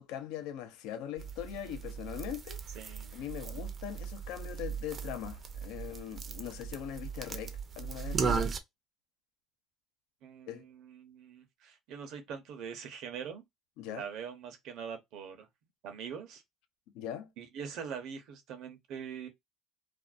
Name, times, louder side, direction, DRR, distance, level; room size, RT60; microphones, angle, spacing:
voice 1, 0.0-2.8 3.1-8.5 10.5-10.6 13.8-14.1 16.9-17.3, left 11 dB, 80° left, 0.4 m, -41 dB
sound 1, 1.2-8.6, right 5 dB, 35° right, 0.5 m, -37 dB
voice 2, 2.7-3.2 10.2-13.4 13.9-15.5 15.8-16.4 17.4-19.3, right 7 dB, 70° right, 0.7 m, -43 dB
2.5 x 2.1 x 2.4 m
supercardioid pair, 95°, 0 cm